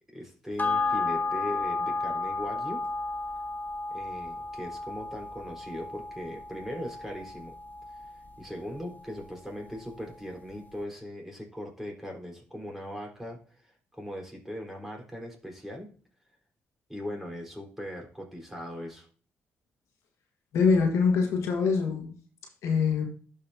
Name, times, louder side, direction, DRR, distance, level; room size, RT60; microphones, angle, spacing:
voice 1, 0.1-2.9 3.9-7.6 7.9-15.9 16.3-16.4 16.9-19.1, equal, 5° right, 0 dB, 4.4 m, -39 dB
sound 1, 0.6-9.3 9.7-9.8, left 3 dB, 35° left, 1.1 m, -33 dB
voice 2, 20.5-22.1 22.6-23.0, left 5 dB, 75° left, 2 dB, 1.6 m, -24 dB
11.5 x 5.4 x 2.8 m, 0.40 s
supercardioid pair, 50°, 5 cm